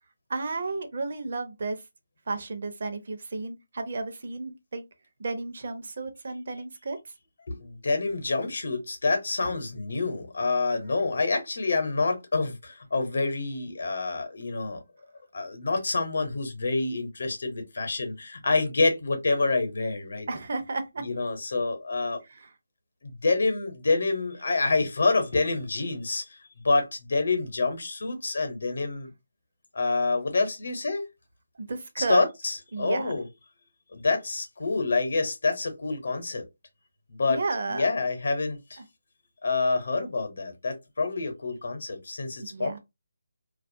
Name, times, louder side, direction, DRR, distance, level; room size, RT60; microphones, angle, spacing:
voice 1, 0.3-1.8 2.3-4.8 5.2-7.0 20.3-21.0 22.3-22.5 31.5-32.2 32.7-33.1 37.3-37.9 42.4-42.8, right 3 dB, 50° right, 0.6 m, -32 dB
voice 2, 7.5-14.8 15.3-20.3 21.0-22.2 23.0-26.4 26.6-29.1 29.7-31.1 32.0-33.3 33.9-36.5 37.1-37.4 37.7-38.8 39.4-42.8, left 3 dB, 60° left, 0.8 m, -27 dB
2.4 x 2.1 x 2.5 m
figure-of-eight pair, 165°, 0 cm